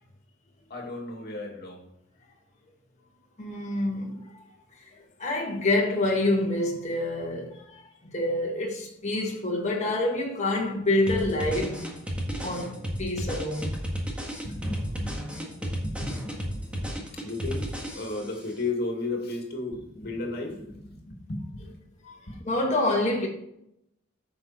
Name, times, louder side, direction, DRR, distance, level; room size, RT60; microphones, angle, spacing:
voice 1, 0.7-1.9 14.4-17.7 17.9-21.8 22.3-22.4, left 2 dB, 55° left, 2.3 m, -35 dB
voice 2, 3.4-4.2 5.2-7.5 8.0-11.8 12.4-13.8 22.0-22.1 22.5-23.3, left 2 dB, 35° left, 1.9 m, -27 dB
sound 1, 11.1-18.4, equal, 5° right, 1.8 m, -33 dB
9.6 x 6.7 x 4.4 m
head